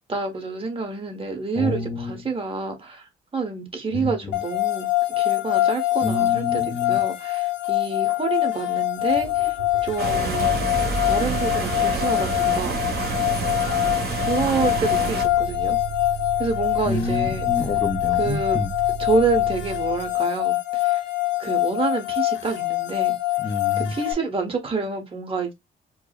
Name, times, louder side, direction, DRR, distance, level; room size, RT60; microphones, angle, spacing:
voice 1, 0.1-4.9 5.2-9.5 9.8-10.5 11.0-12.8 14.2-15.8 16.4-17.5 18.2-18.6 19.0-21.0 21.4-23.2 23.8-25.5, right 4 dB, 30° right, 1.2 m, -28 dB
voice 2, 1.6-2.3 3.9-4.4 6.0-7.0 16.9-18.7 23.4-23.9, left 3 dB, 25° left, 0.5 m, -28 dB
sound 1, 4.3-24.1, left 17 dB, 65° left, 0.7 m, -24 dB
Motor vehicle (road), 9.0-20.2, right 6 dB, 80° right, 0.7 m, -34 dB
sound 2, 10.0-15.2, right 4 dB, 50° right, 1.6 m, -28 dB
4.5 x 2.1 x 2.4 m
cardioid pair, 90°, 20 cm